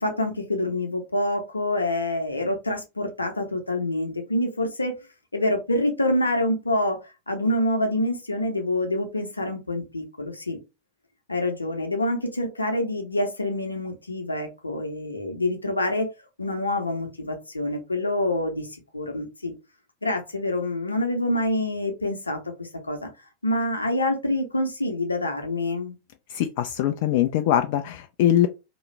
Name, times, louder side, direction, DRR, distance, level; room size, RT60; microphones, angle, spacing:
voice 1, 0.0-4.9 5.3-7.0 7.3-10.6 11.3-16.1 16.4-18.7 18.9-19.5 20.0-23.1 23.4-25.9, left 1 dB, 80° left, 0.7 m, -26 dB
voice 2, 26.3-28.5, left 11 dB, 50° left, 0.3 m, -22 dB
3.0 x 2.4 x 3.2 m
figure-of-eight pair, 90°, 0 cm